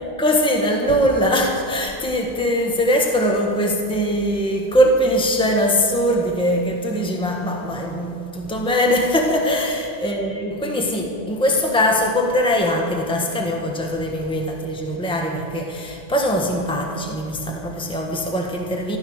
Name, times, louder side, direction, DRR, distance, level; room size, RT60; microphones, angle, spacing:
voice 1, 0.0-19.0, equal, 5° left, 1 dB, 1.4 m, -21 dB
14.0 x 13.5 x 6.3 m, 2.7 s
omnidirectional pair, 1.1 m